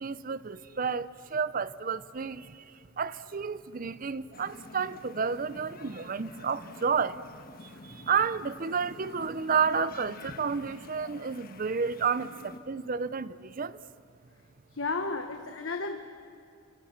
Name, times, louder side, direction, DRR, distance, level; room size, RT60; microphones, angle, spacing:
voice 1, 0.0-2.6 3.0-7.2 7.6-13.8, right 6 dB, 40° right, 0.5 m, -31 dB
sound 1, 4.3-12.6, left 2 dB, 45° left, 1.4 m, -48 dB
voice 2, 14.7-16.0, left 3 dB, 60° left, 1.2 m, -33 dB
29.5 x 26.5 x 6.8 m
head